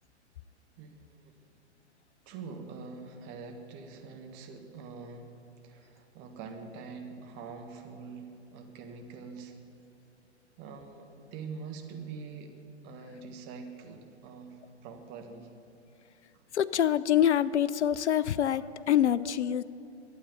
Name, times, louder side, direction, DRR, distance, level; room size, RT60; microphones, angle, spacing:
voice 1, 0.8-1.3 2.2-5.3 5.6-9.5 10.6-12.5 12.8-15.5 16.3-16.5, right 5 dB, 30° right, 5 dB, 1.5 m, -44 dB
voice 2, 16.5-19.6, left 10 dB, 75° left, 17 dB, 0.5 m, -25 dB
12.0 x 8.9 x 9.7 m, 2.6 s
figure-of-eight pair, 115°, 35 cm